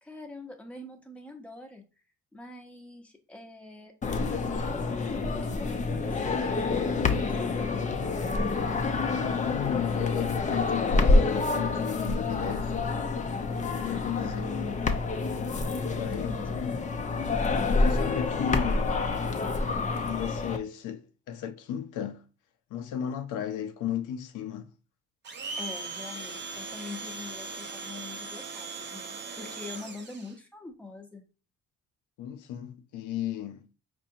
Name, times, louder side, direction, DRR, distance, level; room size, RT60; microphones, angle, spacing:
voice 1, 0.0-1.8 2.3-8.0 14.2-14.9 16.1-16.7 25.6-31.2, left 3 dB, 5° left, 0.8 m, -44 dB
sound 1, 4.0-20.6, left 3 dB, 25° left, 0.5 m, -28 dB
voice 2, 9.1-12.8 13.6-14.6 15.8-16.8 17.7-19.0 20.1-22.2 22.7-24.7 32.2-33.7, left 9 dB, 80° left, 0.5 m, -34 dB
Domestic sounds home sounds, 25.2-30.3, right 4 dB, 35° right, 0.7 m, -39 dB
4.2 x 2.6 x 2.7 m
cardioid pair, 90°, 30 cm